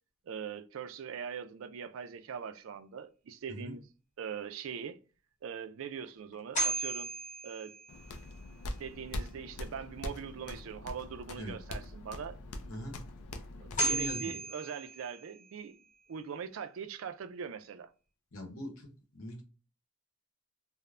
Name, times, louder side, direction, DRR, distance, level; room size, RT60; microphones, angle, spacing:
voice 1, 0.3-3.8 4.2-5.0 5.4-7.1 7.4-7.7 8.8-12.4 13.6-15.8 16.1-17.9, right 7 dB, 65° right, 0.3 m, -42 dB
sound 1, 6.3-8.4 13.4-13.5 13.8-15.7, right 2 dB, 35° left, 0.9 m, -35 dB
sound 2, 7.9-14.1, left 1 dB, 85° left, 0.4 m, -43 dB
voice 2, 13.7-14.4 18.3-18.9 19.1-19.4, equal, 70° left, 0.8 m, -41 dB
3.2 x 2.1 x 2.4 m
head